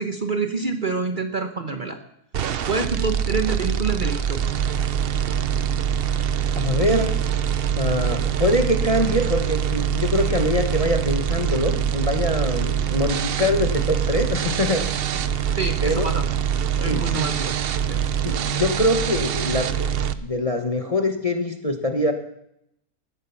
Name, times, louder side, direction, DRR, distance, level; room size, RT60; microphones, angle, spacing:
voice 1, 0.0-2.0 2.6-4.5 15.6-16.3 16.7-17.6 17.9-18.0, right 4 dB, 35° right, 6 dB, 1.0 m, -27 dB
sound 1, 2.3-20.1, right 9 dB, 55° right, 0.7 m, -24 dB
voice 2, 6.6-7.2 7.8-14.9 15.1-15.3 15.8-16.1 16.8-17.2 18.2-19.9 20.2-22.1, left 1 dB, 25° left, 4 dB, 0.9 m, -23 dB
15.5 x 9.5 x 7.1 m, 0.79 s
omnidirectional pair, 1.6 m